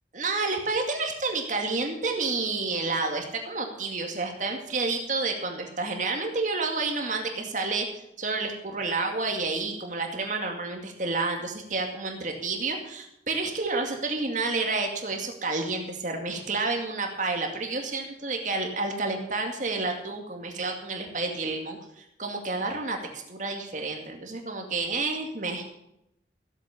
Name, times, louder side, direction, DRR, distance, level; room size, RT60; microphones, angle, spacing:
voice 1, 0.1-7.9 8.2-25.8, right 3 dB, 45° right, 3 dB, 2.2 m, -30 dB
15.5 x 8.8 x 7.0 m, 0.79 s
head